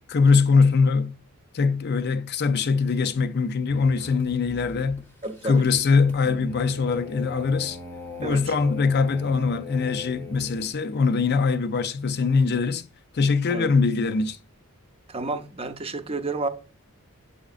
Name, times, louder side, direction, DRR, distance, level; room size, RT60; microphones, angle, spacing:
voice 1, 0.1-1.1 1.5-5.0 5.4-7.8 8.2-12.8 13.1-14.4, left 4 dB, 50° left, 0.5 m, -22 dB
sound 1, 3.7-10.7, left 3 dB, 10° left, 0.8 m, -40 dB
voice 2, 5.2-5.6 8.2-8.5 13.5-13.7 15.1-16.5, right 2 dB, 25° right, 0.6 m, -30 dB
7.7 x 5.0 x 2.4 m
head